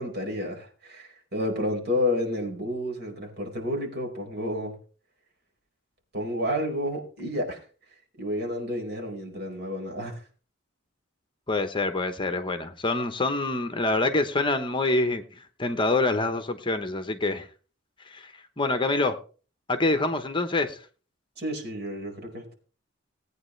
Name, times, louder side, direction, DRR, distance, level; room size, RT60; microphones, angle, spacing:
voice 1, 0.0-4.7 6.1-7.6 8.2-10.2 21.4-22.5, left 1 dB, 50° right, 1 dB, 4.7 m, -30 dB
voice 2, 11.5-15.2 15.6-17.5 18.1-19.2 19.7-20.8, left 2 dB, 25° left, 8 dB, 1.0 m, -26 dB
19.0 x 9.1 x 3.3 m, 0.39 s
head